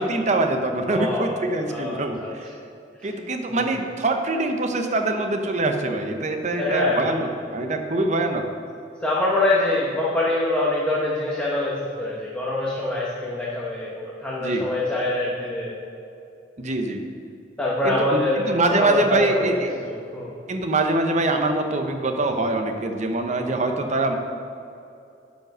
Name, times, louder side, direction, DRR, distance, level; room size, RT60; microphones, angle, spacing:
voice 1, 0.0-2.5 3.0-8.4 14.4-14.7 16.6-17.0 17.8-19.7 20.5-24.1, right 2 dB, 40° right, 5 dB, 0.9 m, -24 dB
voice 2, 0.9-1.4 1.7-2.3 3.5-3.7 6.6-7.1 9.0-15.8 17.6-18.5 18.8-19.3 19.8-20.4, left 2 dB, 5° left, -6 dB, 1.1 m, -24 dB
10.0 x 5.3 x 6.1 m, 2.7 s
head